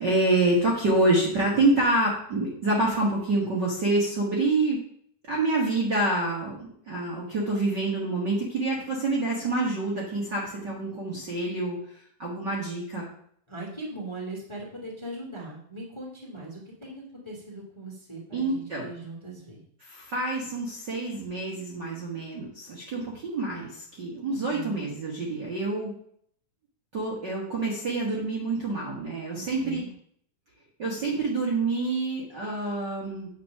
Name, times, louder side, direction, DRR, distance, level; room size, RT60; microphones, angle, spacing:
voice 1, 0.0-4.8 5.3-11.8 12.2-13.1 18.3-18.9 19.8-25.9 26.9-29.8 30.8-33.3, right 2 dB, 40° right, -5 dB, 1.8 m, -27 dB
voice 2, 13.5-19.6 24.3-24.8 29.3-29.9, right 2 dB, 10° left, -3 dB, 1.8 m, -40 dB
8.5 x 5.2 x 6.5 m, 0.64 s
omnidirectional pair, 3.8 m